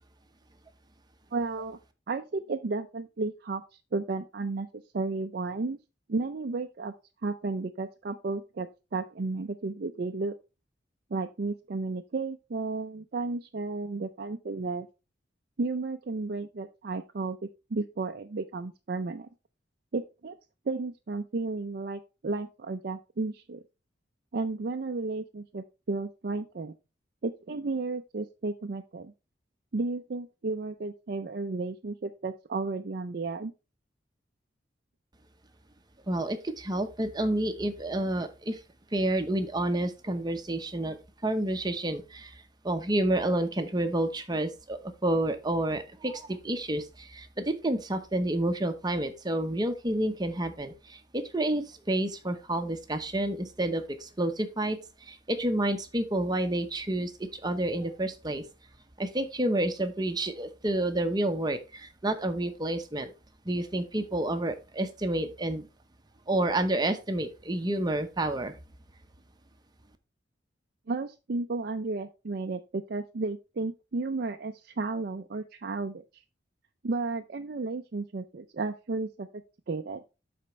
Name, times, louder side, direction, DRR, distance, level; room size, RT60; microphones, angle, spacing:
voice 1, 1.3-1.8 2.1-3.6 3.9-4.7 4.9-5.8 6.1-6.9 7.2-10.3 11.1-14.9 15.6-17.4 17.7-19.3 19.9-20.4 20.7-23.6 24.3-26.7 27.2-29.1 29.7-33.5 70.9-76.2 76.8-79.3 79.7-80.0, right 3 dB, 55° right, 5 dB, 0.5 m, -33 dB
voice 2, 36.1-38.6 38.9-41.0 41.2-42.3 42.6-58.4 59.0-63.1 63.4-65.7 66.3-68.6, right 1 dB, 20° right, 7 dB, 0.8 m, -29 dB
12.0 x 4.3 x 3.1 m, 0.28 s
head